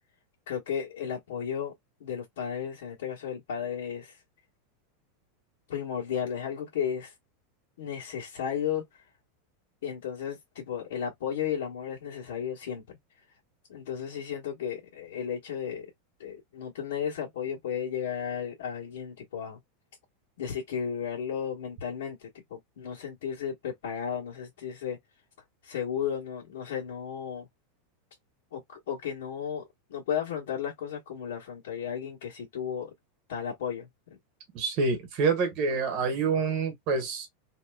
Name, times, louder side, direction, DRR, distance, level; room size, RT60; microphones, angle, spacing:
voice 1, 0.5-1.7 2.0-4.2 5.7-7.1 7.8-8.9 9.8-13.0 13.7-15.9 16.2-19.6 20.4-25.0 25.6-27.5 28.5-29.6 29.9-32.9 33.3-33.9, left 8 dB, 85° left, 1.3 m, -34 dB
voice 2, 34.5-37.3, right 4 dB, 40° right, 1.4 m, -27 dB
3.1 x 2.8 x 2.3 m
supercardioid pair, 155°, 0 cm